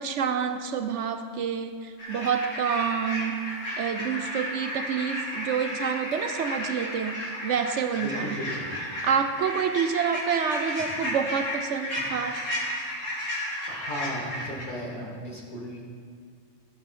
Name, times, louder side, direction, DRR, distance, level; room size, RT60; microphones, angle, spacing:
voice 1, 0.0-3.4 3.8-8.4 9.0-12.4, right 7 dB, 70° right, 9 dB, 0.9 m, -28 dB
sound 1, 2.0-14.6, equal, 80° left, 3.1 m, -33 dB
voice 2, 8.0-8.7 13.7-15.8, equal, 40° left, -3 dB, 2.4 m, -35 dB
15.5 x 9.4 x 4.3 m, 2.2 s
omnidirectional pair, 1.3 m